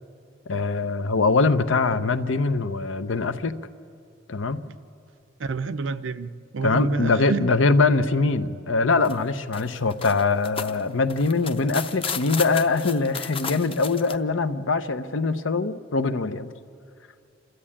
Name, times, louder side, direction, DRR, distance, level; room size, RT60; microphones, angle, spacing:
voice 1, 0.5-3.6 4.3-4.6 6.6-16.5, left 3 dB, 85° left, 11 dB, 0.8 m, -23 dB
voice 2, 5.4-7.4, right 4 dB, 80° right, 12 dB, 0.6 m, -29 dB
sound 1, 9.0-9.1 9.5-14.2, left 6 dB, 30° left, 0.7 m, -33 dB
28.0 x 13.0 x 8.7 m, 2.6 s
head